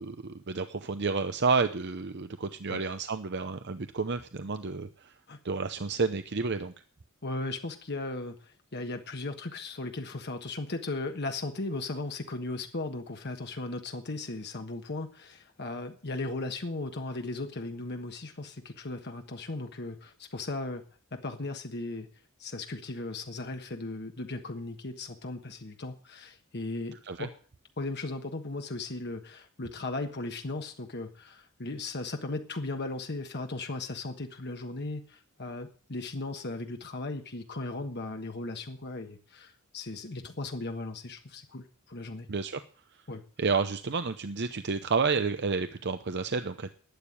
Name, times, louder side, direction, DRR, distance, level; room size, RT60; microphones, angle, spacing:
voice 1, 0.0-4.9 5.4-6.7 27.1-27.3 42.3-42.6 43.4-46.7, right 4 dB, 55° right, 10 dB, 0.8 m, -30 dB
voice 2, 7.2-20.8 21.1-22.1 22.4-27.4 27.8-42.3 43.1-43.2, left 2 dB, 55° left, 5 dB, 1.4 m, -37 dB
12.0 x 9.1 x 10.0 m, 0.44 s
head